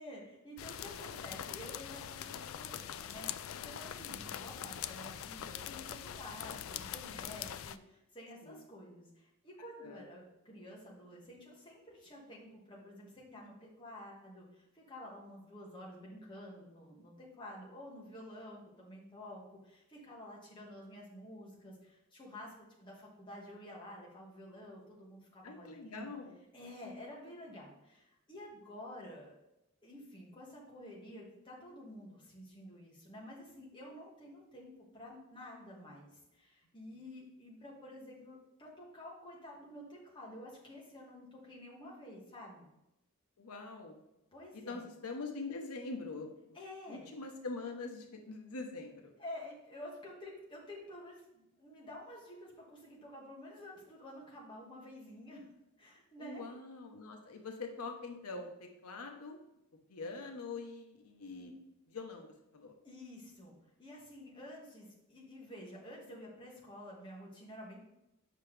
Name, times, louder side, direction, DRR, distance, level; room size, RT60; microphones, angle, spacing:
voice 1, 0.0-26.1 26.5-29.3 29.8-42.7 44.3-44.8 46.5-47.1 49.2-55.5 55.8-56.4 62.8-67.8, left 1 dB, 20° left, -4 dB, 1.6 m, -50 dB
sound 1, 0.6-7.8, left 10 dB, 65° left, 0.3 m, -43 dB
voice 2, 25.4-26.4 43.4-44.0 44.5-46.6 46.9-49.1 56.2-59.4 59.9-61.5 61.9-62.7, left 3 dB, 85° left, 4 dB, 0.8 m, -44 dB
8.1 x 5.8 x 3.3 m, 0.89 s
head